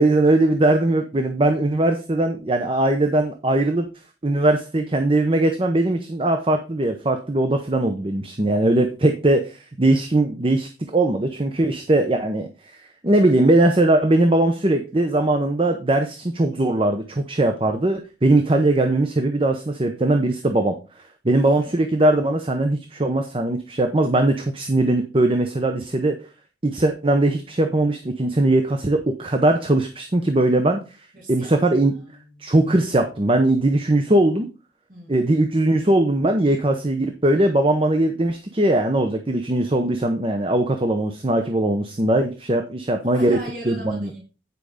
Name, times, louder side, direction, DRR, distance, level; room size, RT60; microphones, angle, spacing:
voice 1, 0.0-3.9 4.2-12.8 13.0-20.8 21.2-26.2 26.6-30.8 31.3-31.9 32.4-34.5 35.1-44.1, right 1 dB, 30° right, 6 dB, 0.8 m, -20 dB
voice 2, 21.3-21.8 31.1-32.5 34.9-35.5 43.1-44.2, left 1 dB, 50° right, -3 dB, 3.8 m, -39 dB
9.4 x 5.1 x 4.9 m, 0.32 s
head